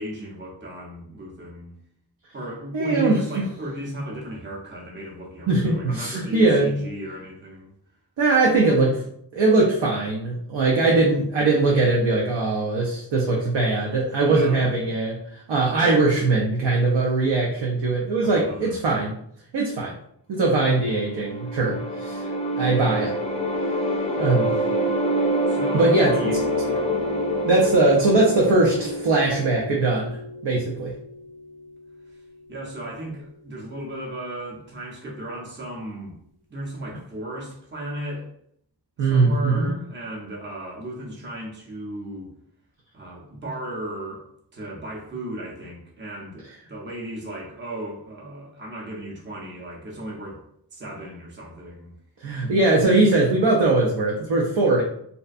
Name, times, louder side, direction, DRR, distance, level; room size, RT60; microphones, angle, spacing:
voice 1, 0.0-1.8 2.3-7.7 14.2-14.9 18.2-18.7 25.5-26.4 26.7-26.9 32.5-36.1 36.5-38.3 39.0-42.3 42.9-44.2 44.5-50.4 50.7-51.9, right 1 dB, 25° right, -3 dB, 0.6 m, -35 dB
voice 2, 2.7-3.4 5.5-6.8 8.2-9.0 9.3-19.1 19.5-19.9 20.3-22.3 22.6-23.1 24.2-24.6 25.7-26.3 27.4-30.2 30.4-30.9 39.0-39.7 52.2-54.8, right 3 dB, 80° right, -3 dB, 0.6 m, -21 dB
sound 1, 20.8-30.0, equal, 15° left, 0.3 m, -26 dB
sound 2, 26.2-33.4, left 2 dB, 60° right, 0.9 m, -35 dB
2.6 x 2.1 x 2.4 m, 0.68 s
wide cardioid pair, 95°, 43 cm